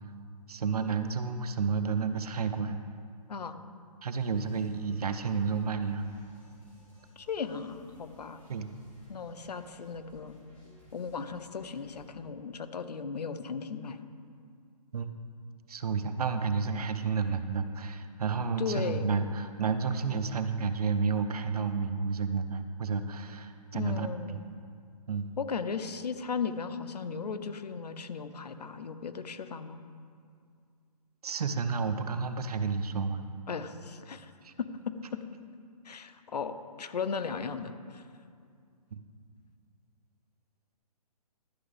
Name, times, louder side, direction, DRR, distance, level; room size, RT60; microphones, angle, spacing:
voice 1, 0.5-2.8 4.0-6.0 8.5-8.7 14.9-15.1 15.7-24.1 25.1-25.3 31.2-33.2 34.4-34.5 38.9-39.0, right 5 dB, 70° right, 9 dB, 0.8 m, -31 dB
voice 2, 3.3-3.6 7.2-8.4 9.1-10.3 10.9-14.0 18.6-19.0 23.7-24.4 25.4-29.8 33.5-34.3 34.6-35.2 35.8-38.0, left 5 dB, 90° left, 10 dB, 0.8 m, -36 dB
sound 1, 4.1-12.0, equal, 10° left, 2.1 m, -58 dB
11.5 x 6.2 x 5.1 m, 2.2 s
hypercardioid pair, 170°, 20 cm